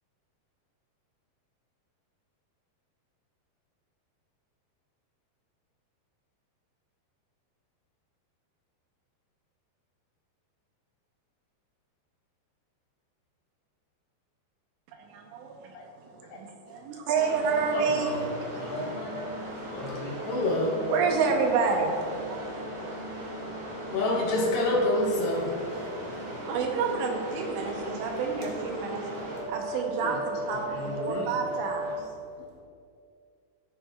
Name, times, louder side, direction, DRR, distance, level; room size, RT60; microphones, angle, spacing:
voice 1, 15.1-18.6 20.9-21.9 22.3-22.7 26.5-29.0 29.5-31.9, right 5 dB, 80° right, 1 dB, 3.1 m, -29 dB
sound 1, 17.1-32.0, right 1 dB, 40° right, 2.9 m, -37 dB
voice 2, 17.7-18.3 18.5-19.3 19.7-20.1 30.0-30.2 30.5-31.4, left 1 dB, 85° left, -4 dB, 4.3 m, -37 dB
voice 3, 20.3-20.8 23.9-25.5, left 1 dB, 70° left, -4 dB, 3.4 m, -25 dB
15.5 x 6.3 x 2.4 m, 2.3 s
omnidirectional pair, 5.1 m